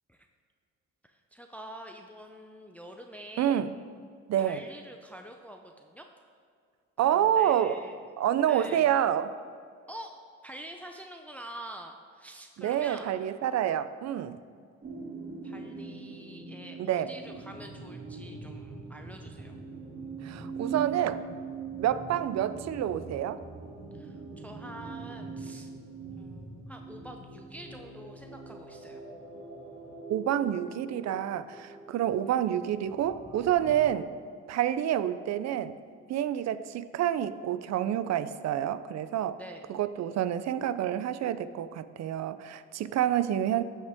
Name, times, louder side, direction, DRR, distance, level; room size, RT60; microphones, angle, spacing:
voice 1, 1.0-3.6 4.4-6.1 7.0-8.0 8.5-8.9 9.9-10.2 10.4-13.1 15.4-19.6 23.9-25.7 26.0-29.0 36.7-36.8 39.4-39.6, right 1 dB, 5° left, 3 dB, 0.6 m, -46 dB
voice 2, 3.4-3.7 4.3-4.6 7.0-7.8 8.2-9.3 12.6-14.4 16.8-17.1 20.2-21.2 21.8-23.4 30.1-34.1 34.5-35.8 36.1-39.4 39.7-43.6, right 10 dB, 60° right, 14 dB, 0.5 m, -28 dB
sound 1, 14.8-33.8, right 4 dB, 40° right, 2.4 m, -42 dB
14.0 x 5.4 x 3.6 m, 2.2 s
cardioid pair, 90°, 30 cm